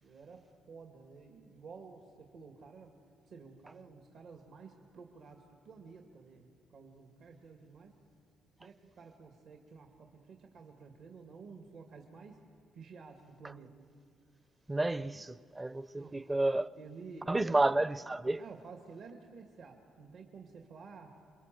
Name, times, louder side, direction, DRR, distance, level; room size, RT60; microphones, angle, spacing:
voice 1, 0.0-2.9 3.2-7.9 8.6-12.4 12.7-13.8 16.0-16.2 16.8-18.0 18.4-21.1, right 5 dB, 70° right, 2.3 m, -52 dB
voice 2, 14.7-16.7 17.3-18.4, right 2 dB, 20° right, 0.6 m, -31 dB
28.5 x 23.0 x 7.8 m
cardioid pair, 90°, 0 cm